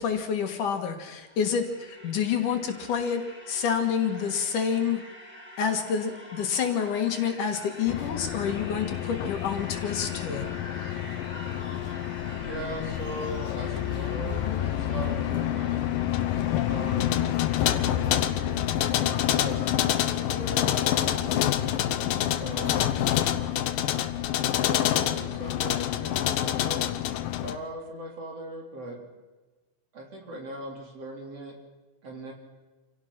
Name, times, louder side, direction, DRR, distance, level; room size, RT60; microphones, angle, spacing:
voice 1, 0.0-3.2 3.5-5.0 5.6-10.5, left 7 dB, 65° left, 5 dB, 3.0 m, -28 dB
sound 1, 1.1-19.7, equal, 5° right, 5.4 m, -46 dB
sound 2, 7.9-27.6, left 12 dB, 80° left, 2.6 m, -27 dB
voice 2, 12.4-15.8 16.6-18.4 19.0-21.6 22.4-23.2 24.6-26.9 27.4-29.0 29.9-31.6 32.0-32.3, right 2 dB, 45° right, 0 dB, 4.5 m, -39 dB
27.5 x 17.0 x 5.9 m, 1.2 s
omnidirectional pair, 4.1 m